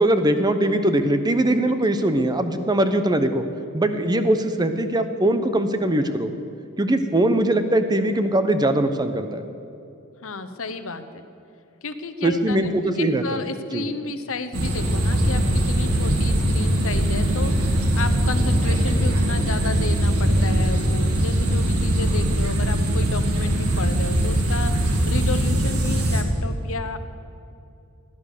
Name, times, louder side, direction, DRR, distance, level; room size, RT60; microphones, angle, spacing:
voice 1, 0.0-3.4 3.7-6.3 6.8-9.5 12.2-13.4 13.7-13.9, right 1 dB, 20° right, 9 dB, 0.9 m, -21 dB
voice 2, 10.2-11.2 11.8-27.0, left 3 dB, 70° left, 9 dB, 1.0 m, -32 dB
sound 1, 14.5-26.2, right 1 dB, 85° right, 2.1 m, -21 dB
16.5 x 11.0 x 6.7 m, 2.6 s
head